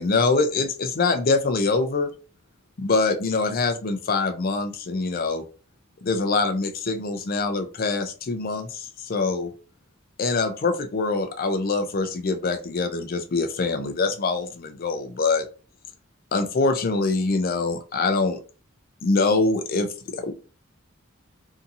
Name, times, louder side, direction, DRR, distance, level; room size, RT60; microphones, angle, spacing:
voice 1, 0.0-2.1 2.8-5.4 6.0-9.5 10.2-15.5 16.3-18.4 19.0-20.3, left 3 dB, 45° left, 7 dB, 0.4 m, -24 dB
2.8 x 2.6 x 2.4 m, 0.35 s
head